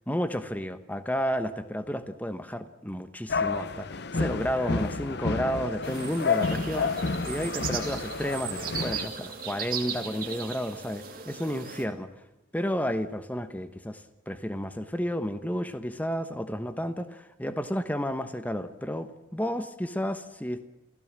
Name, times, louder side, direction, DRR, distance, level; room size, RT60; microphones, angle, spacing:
voice 1, 0.1-12.1 12.5-20.6, equal, 10° left, 10 dB, 1.1 m, -32 dB
sound 1, 3.3-9.1, left 4 dB, 55° left, 0.8 m, -30 dB
sound 2, 5.8-11.8, right 7 dB, 45° right, 2.9 m, -37 dB
28.5 x 16.5 x 7.5 m, 0.97 s
head